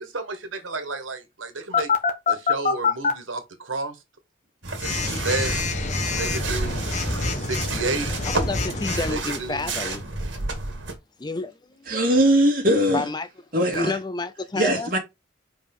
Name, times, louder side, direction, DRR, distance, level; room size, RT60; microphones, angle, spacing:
voice 1, 0.0-1.9 2.3-4.0 4.8-5.5 6.1-6.9 7.3-8.1 9.1-9.7, right 3 dB, 90° right, 1.7 m, -31 dB
Telephone, 1.7-3.1 4.8-9.2, left 4 dB, 35° left, 1.3 m, -25 dB
sound 1, 4.6-10.9, right 2 dB, 70° right, 2.2 m, -31 dB
voice 2, 8.2-10.0 11.2-11.9 12.9-13.3 13.7-14.9, left 3 dB, 20° left, 0.5 m, -30 dB
voice 3, 11.9-13.1 13.5-14.0 14.5-15.0, right 1 dB, 45° right, 2.6 m, -20 dB
5.2 x 5.1 x 5.4 m
head